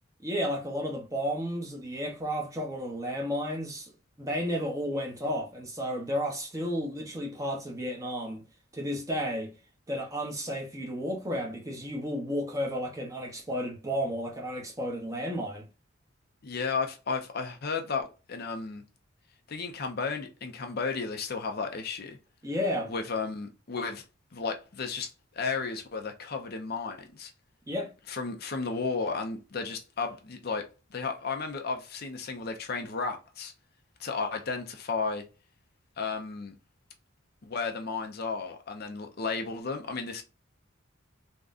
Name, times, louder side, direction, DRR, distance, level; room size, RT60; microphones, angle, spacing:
voice 1, 0.2-3.9 4.2-8.4 8.7-9.5 9.9-15.7 22.4-22.9 27.7-27.9, equal, 15° right, 0.7 m, -32 dB
voice 2, 16.4-18.8 19.5-22.2 22.9-24.0 24.3-25.1 25.3-27.3 28.1-30.6 30.9-33.5 34.0-35.2 36.0-36.5 37.4-40.2, left 4 dB, 50° left, 0.5 m, -33 dB
3.6 x 2.2 x 2.4 m
head